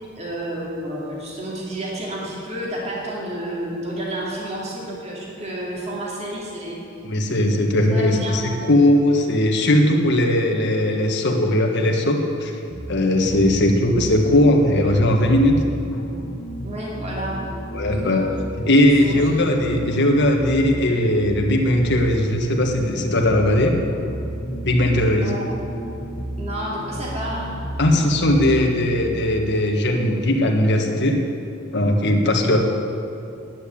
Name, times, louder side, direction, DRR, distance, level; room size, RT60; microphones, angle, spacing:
voice 1, 0.1-6.8 7.9-8.4 16.6-17.4 17.9-18.2 19.0-19.2 25.2-25.5 26.4-27.5, right 1 dB, 35° right, -4 dB, 2.5 m, -30 dB
voice 2, 7.0-12.5 12.9-15.6 17.7-18.2 18.6-23.8 24.6-25.3 27.8-31.2 31.7-32.6, left 1 dB, 60° left, 1 dB, 1.6 m, -18 dB
sound 1, 12.7-28.8, right 1 dB, 80° left, 1.9 m, -32 dB
10.5 x 9.6 x 8.6 m, 2.6 s
head